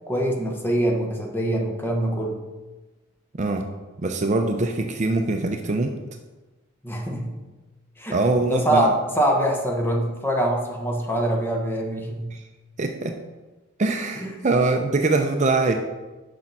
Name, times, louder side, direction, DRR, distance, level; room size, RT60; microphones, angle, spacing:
voice 1, 0.1-2.4 6.8-7.3 8.0-12.3 14.2-14.4, right 1 dB, 10° left, 1 dB, 0.9 m, -24 dB
voice 2, 4.0-5.9 8.1-8.9 12.3-12.4 12.8-13.2 13.8-15.8, right 3 dB, 35° right, 4 dB, 0.5 m, -23 dB
6.4 x 5.3 x 6.0 m, 1.2 s
head